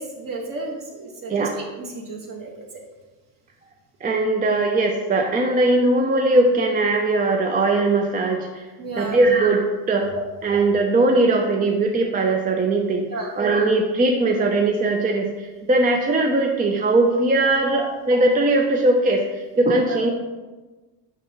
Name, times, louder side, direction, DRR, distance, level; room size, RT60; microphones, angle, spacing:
voice 1, 0.0-1.7 1.9-2.8 8.8-9.2 10.1-10.2 13.1-13.3 17.7-17.8 19.9-20.1, right 2 dB, 40° right, 0 dB, 1.4 m, -33 dB
voice 2, 4.0-8.6 9.0-10.1 10.4-13.1 13.4-20.1, right 2 dB, 20° right, 2 dB, 0.3 m, -20 dB
5.9 x 5.5 x 2.9 m, 1.2 s
cardioid pair, 110°, 50 cm